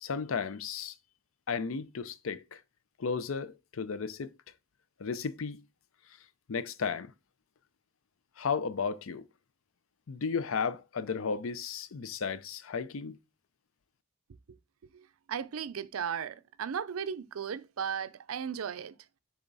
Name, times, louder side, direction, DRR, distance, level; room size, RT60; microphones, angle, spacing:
voice 1, 0.0-0.9 1.5-2.6 3.0-4.3 5.0-5.6 6.5-7.1 8.4-9.2 10.1-13.2, left 5 dB, 80° left, 0.5 m, -34 dB
voice 2, 14.9-19.0, right 7 dB, 90° right, 0.5 m, -36 dB
7.1 x 3.7 x 4.0 m
head